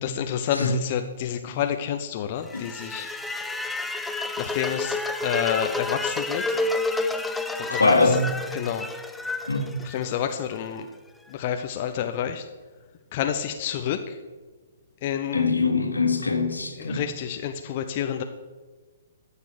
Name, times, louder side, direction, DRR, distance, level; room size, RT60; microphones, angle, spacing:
voice 1, 0.0-3.1 4.4-6.6 7.6-8.1 8.5-8.9 9.8-10.9 11.3-12.5 13.1-14.2 15.0-15.5 16.8-18.2, left 9 dB, 40° left, 6 dB, 0.7 m, -29 dB
sound 1, 2.5-10.6, left 2 dB, 5° left, 0.7 m, -30 dB
voice 2, 7.7-8.3 9.5-9.7 15.3-17.1, left 3 dB, 80° left, 5 dB, 2.0 m, -23 dB
13.5 x 7.0 x 6.6 m, 1.3 s
figure-of-eight pair, 120°, 0 cm